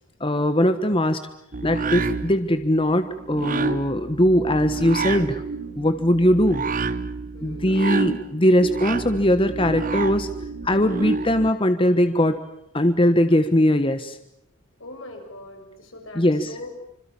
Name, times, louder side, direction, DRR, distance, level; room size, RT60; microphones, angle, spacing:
voice 1, 0.2-1.2 1.6-5.4 5.8-6.6 7.4-10.3 10.6-12.4 12.7-14.2 16.1-16.5, left 1 dB, 25° left, 10 dB, 1.3 m, -20 dB
sound 1, 1.5-11.5, right 4 dB, 40° right, 1.0 m, -29 dB
voice 2, 7.3-7.7 14.8-16.7, left 1 dB, 70° left, 3 dB, 7.0 m, -41 dB
26.0 x 26.0 x 7.2 m, 0.77 s
head